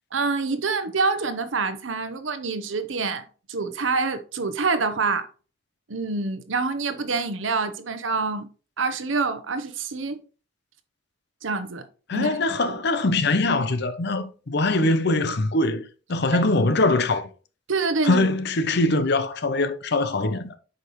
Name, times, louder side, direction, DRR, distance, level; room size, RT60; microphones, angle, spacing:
voice 1, 0.1-5.3 5.9-8.5 8.8-10.2 11.4-11.9 12.1-12.8 16.3-16.4 17.7-18.3, right 4 dB, 90° right, 0.9 m, -26 dB
voice 2, 12.1-15.8 16.1-17.3 18.0-20.5, left 2 dB, 60° left, 0.8 m, -22 dB
8.1 x 5.3 x 3.1 m
head